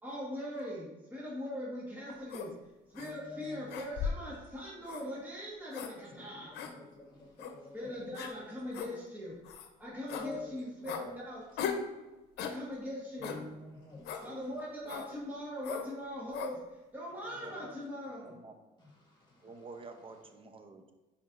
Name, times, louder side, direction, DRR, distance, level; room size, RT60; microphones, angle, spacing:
voice 1, 0.0-2.5 2.9-6.6 7.7-9.3 9.8-11.6 12.4-13.4 14.2-16.6 16.9-18.3, equal, 10° right, -6 dB, 1.5 m, -41 dB
sound 1, 2.3-2.5 2.9-3.1 3.7-4.3 4.9-5.0 5.7-5.9 6.5-6.7 7.4-7.5 8.1-8.3 8.7-8.9 9.4-9.7 10.1-10.3 10.9-11.0 11.6-11.9 12.4-12.6 13.2-13.4 14.0-14.2 14.9-15.1 15.6-15.9 16.3-16.5, left 7 dB, 80° left, 0.7 m, -37 dB
voice 2, 3.0-3.7 6.1-8.7 10.1-10.5 10.8-11.2 13.2-14.6 17.2-17.8 19.0-19.5, left 3 dB, 25° left, -2 dB, 1.9 m, -49 dB
voice 3, 17.3-17.7 18.2-18.6 19.4-20.9, right 3 dB, 30° right, 6 dB, 0.8 m, -50 dB
10.0 x 4.4 x 2.6 m, 1.1 s
cardioid pair, 110°, 17 cm